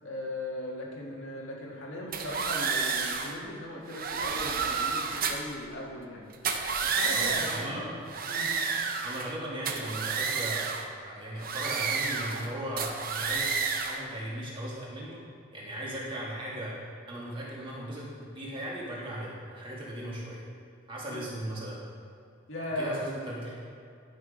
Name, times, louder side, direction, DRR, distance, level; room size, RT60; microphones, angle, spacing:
voice 1, 0.0-6.3 6.8-7.9 8.3-8.5 21.1-21.2 22.5-23.0, left 1 dB, 75° left, -2 dB, 1.9 m, -38 dB
sound 1, 2.1-3.4 3.9-5.5 6.3-7.7 8.1-9.4 9.7-10.9 11.4-12.5 12.8-14.0, right 5 dB, 45° right, 0.7 m, -30 dB
voice 2, 7.1-7.9 9.0-15.2 15.5-16.8 17.1-20.4 20.9-21.8 22.8-23.5, right 1 dB, 25° right, -6 dB, 2.3 m, -37 dB
11.0 x 6.2 x 5.1 m, 2.5 s
head